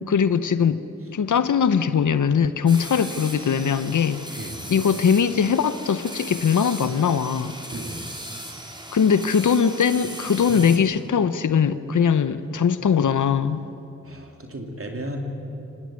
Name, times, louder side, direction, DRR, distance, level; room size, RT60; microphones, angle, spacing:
voice 1, 0.0-0.8 1.1-7.5 8.9-13.6, left 7 dB, 90° left, 13 dB, 0.7 m, -21 dB
sound 1, 2.7-10.8, right 1 dB, 15° right, 3.8 m, -38 dB
voice 2, 7.7-8.0 10.5-10.6 14.0-15.2, right 1 dB, 50° right, 2 dB, 3.0 m, -35 dB
24.5 x 17.5 x 9.5 m, 2.8 s
cardioid pair, 45°, 30 cm